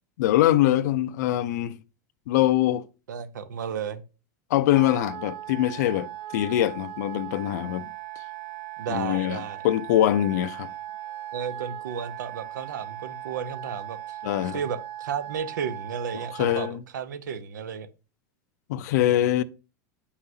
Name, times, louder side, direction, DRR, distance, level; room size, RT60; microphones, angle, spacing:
voice 1, 0.2-1.8 2.3-2.9 4.5-7.8 8.9-10.7 14.2-14.6 16.4-16.8 18.7-19.4, left 13 dB, 70° left, 0.5 m, -23 dB
voice 2, 3.1-4.0 8.8-9.7 11.3-14.2 14.5-17.9, right 7 dB, 85° right, 0.8 m, -33 dB
Wind instrument woodwind instrument, 4.7-16.7, right 14 dB, 60° right, 1.1 m, -38 dB
8.0 x 5.7 x 2.7 m
hypercardioid pair, 115°, 10 cm